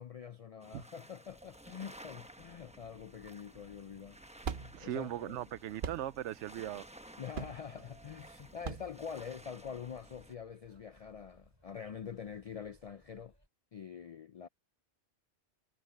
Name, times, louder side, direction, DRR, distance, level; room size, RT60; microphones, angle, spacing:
voice 1, 0.0-5.4 7.2-13.3 13.7-14.5, left 7 dB, 75° left, 0.3 m, -45 dB
sound 1, 0.6-10.3, right 1 dB, 5° right, 0.9 m, -55 dB
sound 2, 1.3-13.5, equal, 20° right, 6.5 m, -66 dB
sound 3, 3.6-9.8, right 6 dB, 50° right, 0.9 m, -44 dB
voice 2, 4.7-6.9, right 12 dB, 90° right, 0.9 m, -39 dB
omnidirectional pair, 1.2 m